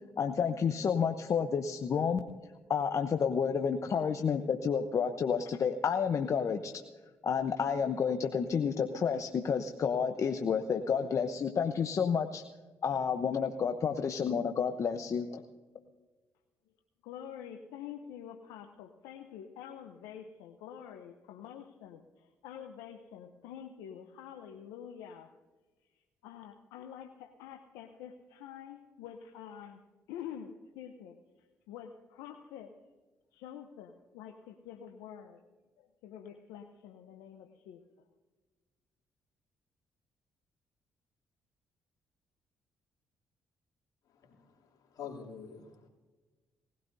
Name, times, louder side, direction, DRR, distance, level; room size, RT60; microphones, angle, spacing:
voice 1, 0.2-2.2 2.7-6.7 7.2-12.4 12.8-15.4, left 6 dB, 55° left, 6 dB, 0.9 m, -30 dB
voice 2, 17.0-25.3 26.2-32.7 33.3-35.4 35.8-37.8, left 9 dB, 85° left, 4 dB, 0.8 m, -47 dB
voice 3, 44.1-45.9, left 6 dB, 70° left, 0 dB, 3.2 m, -47 dB
19.5 x 16.0 x 2.7 m, 1.3 s
hypercardioid pair, 50°, 7 cm